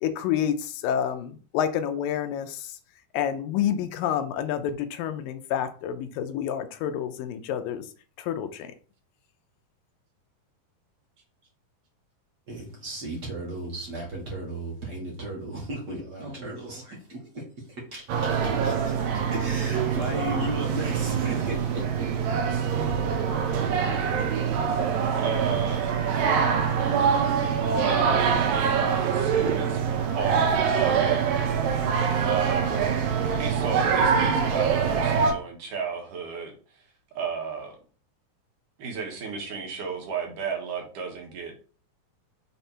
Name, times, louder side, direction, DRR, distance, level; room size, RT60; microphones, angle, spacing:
voice 1, 0.0-2.8 3.1-7.8 8.2-8.7, left 9 dB, 90° left, 8 dB, 2.5 m, -28 dB
voice 2, 12.5-22.1, right 1 dB, 40° right, -4 dB, 1.5 m, -35 dB
sound 1, 18.1-35.3, right 6 dB, 90° right, 2.6 m, -24 dB
voice 3, 23.9-24.5 25.0-25.9 27.9-29.8 30.1-31.2 32.2-32.9 33.4-37.7 38.8-41.6, right 5 dB, 70° right, 1 dB, 2.9 m, -34 dB
6.9 x 3.4 x 4.4 m, 0.40 s
omnidirectional pair, 3.9 m